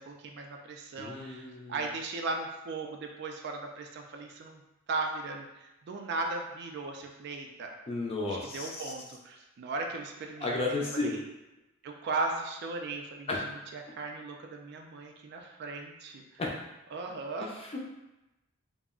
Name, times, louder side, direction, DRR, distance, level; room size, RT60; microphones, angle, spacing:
voice 1, 0.0-4.6 4.9-7.8 8.3-11.2 11.8-16.4 16.9-17.5, right 3 dB, 55° right, 2 dB, 0.3 m, -37 dB
voice 2, 1.0-1.8 7.9-8.9 10.4-11.2 13.3-13.4 16.4-16.5 17.6-17.8, left 2 dB, 30° left, -2 dB, 0.4 m, -33 dB
2.3 x 2.0 x 3.5 m, 0.99 s
head